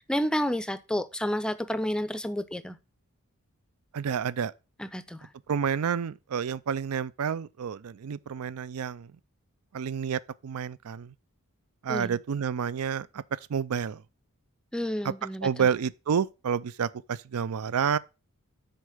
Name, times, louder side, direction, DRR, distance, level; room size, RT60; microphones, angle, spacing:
voice 1, 0.0-2.8 4.8-5.3 11.9-12.2 14.7-15.7, equal, 5° left, 0.5 m, -30 dB
voice 2, 3.9-4.5 5.5-9.1 9.7-11.1 11.8-14.0 15.0-18.0, right 7 dB, 75° right, 0.4 m, -29 dB
6.5 x 4.6 x 6.4 m
head